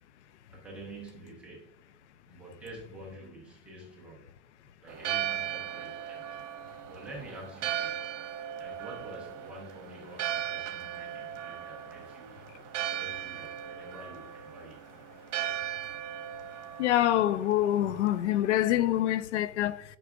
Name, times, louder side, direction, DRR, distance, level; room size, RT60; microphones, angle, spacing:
voice 1, 0.5-1.7 2.3-4.2 4.8-6.4 6.8-8.2 8.6-12.3 12.9-14.8, right 2 dB, 5° right, 0.4 m, -47 dB
Church bell, 4.9-19.0, right 11 dB, 85° right, 1.3 m, -38 dB
voice 2, 16.8-19.8, left 13 dB, 70° left, 0.6 m, -26 dB
12.0 x 5.8 x 2.4 m
supercardioid pair, 180°, 37 cm